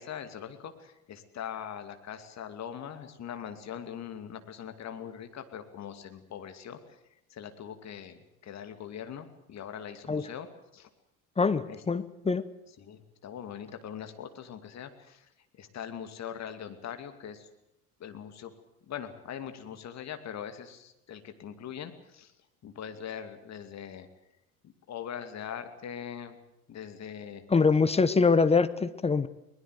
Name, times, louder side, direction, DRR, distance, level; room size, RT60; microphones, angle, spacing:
voice 1, 0.0-6.8 7.3-10.5 10.7-10.9 11.7-11.8 12.8-15.3 15.6-17.5 18.0-18.5 18.9-22.3 22.6-24.1 24.6-26.4 26.7-27.4, left 8 dB, 40° left, 8 dB, 2.6 m, -41 dB
voice 2, 11.4-12.4 27.5-29.3, left 4 dB, 15° left, 13 dB, 0.9 m, -24 dB
22.0 x 20.0 x 7.8 m, 0.86 s
figure-of-eight pair, 65°, 43 cm